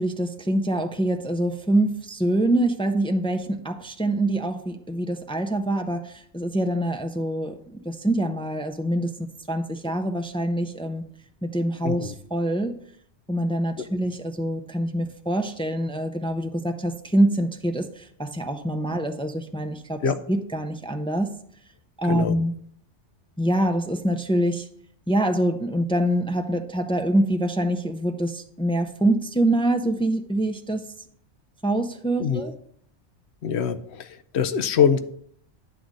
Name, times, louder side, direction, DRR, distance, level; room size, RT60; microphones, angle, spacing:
voice 1, 0.0-9.1 9.5-11.0 11.4-12.8 13.3-20.0 20.3-21.3 22.0-22.5 23.4-24.7 25.1-30.8 31.6-32.5, right 1 dB, 5° left, 6 dB, 0.4 m, -25 dB
voice 2, 11.8-12.1 20.0-20.2 22.0-22.4 32.2-32.5 33.4-35.0, left 7 dB, 70° left, 10 dB, 0.9 m, -24 dB
10.0 x 3.8 x 7.4 m, 0.64 s
omnidirectional pair, 1.2 m